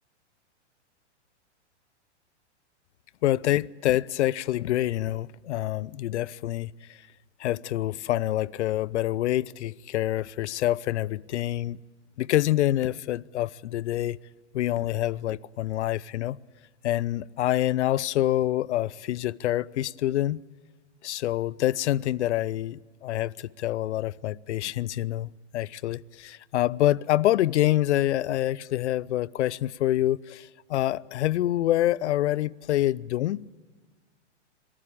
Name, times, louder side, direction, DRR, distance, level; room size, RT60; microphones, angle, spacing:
voice 1, 3.2-6.7 7.4-11.8 12.2-14.2 14.5-16.4 16.8-20.4 21.0-33.5, left 14 dB, 70° left, 0.7 m, -26 dB
26.0 x 18.5 x 8.7 m
hypercardioid pair, 120°, 36 cm